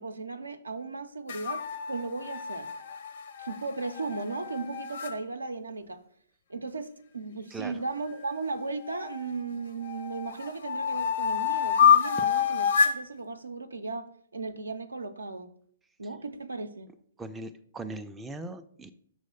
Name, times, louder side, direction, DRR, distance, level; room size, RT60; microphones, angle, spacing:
voice 1, 0.0-2.7 3.4-6.0 6.5-14.1 14.3-15.5 16.0-16.9, right 3 dB, 80° right, 9 dB, 0.5 m, -36 dB
sound 1, 1.3-5.1 8.1-9.3 9.8-13.0, left 7 dB, 60° left, 0.6 m, -27 dB
voice 2, 17.2-18.9, right 2 dB, 10° right, 7 dB, 0.3 m, -39 dB
6.3 x 3.0 x 5.4 m, 0.63 s
figure-of-eight pair, 125°, 0 cm